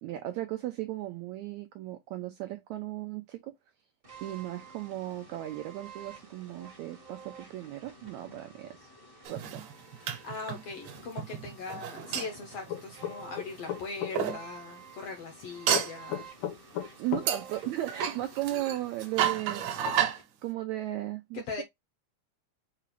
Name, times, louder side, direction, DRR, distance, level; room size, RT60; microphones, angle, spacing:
voice 1, 0.0-3.5 4.2-8.9 9.3-9.6 10.1-10.3 17.0-19.6 20.0-20.1 20.4-21.4, right 14 dB, 90° right, 1.6 m, -36 dB
sound 1, 4.0-20.2, right 4 dB, 40° right, 0.8 m, -51 dB
sound 2, 9.2-13.5 14.1-14.4 15.7-16.0 17.3-20.2, right 9 dB, 65° right, 1.9 m, -31 dB
voice 2, 10.0-16.3 21.3-21.6, left 4 dB, 70° left, 1.5 m, -40 dB
sound 3, 12.7-14.1 15.7-17.3, left 11 dB, 85° left, 3.0 m, -34 dB
6.6 x 2.5 x 3.1 m
omnidirectional pair, 4.0 m